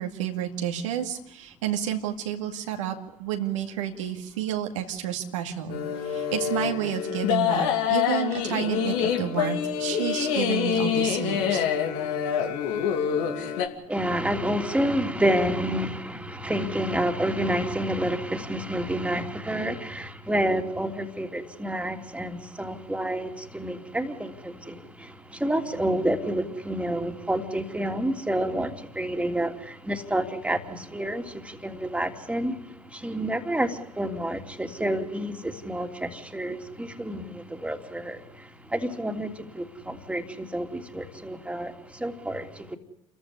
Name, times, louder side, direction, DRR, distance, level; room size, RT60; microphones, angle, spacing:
voice 1, 0.0-11.7, right 9 dB, 75° right, 2.2 m, -30 dB
sound 1, 5.7-13.7, left 8 dB, 65° left, 2.8 m, -26 dB
voice 2, 13.9-32.6 32.9-42.8, right 1 dB, 5° right, 3.1 m, -29 dB
28.5 x 14.5 x 9.9 m
figure-of-eight pair, 60°, 16 cm